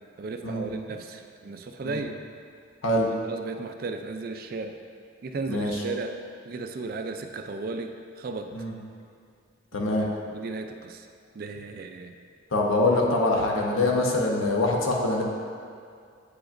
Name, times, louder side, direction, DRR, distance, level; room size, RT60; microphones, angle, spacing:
voice 1, 0.2-2.2 3.2-4.8 5.2-6.1 6.5-8.5 9.7-9.8 10.3-11.1 11.3-12.1, right 3 dB, 45° right, 6 dB, 0.3 m, -35 dB
voice 2, 9.7-10.1 12.5-15.2, left 2 dB, 90° left, -1 dB, 0.9 m, -24 dB
8.5 x 4.9 x 2.6 m, 2.3 s
head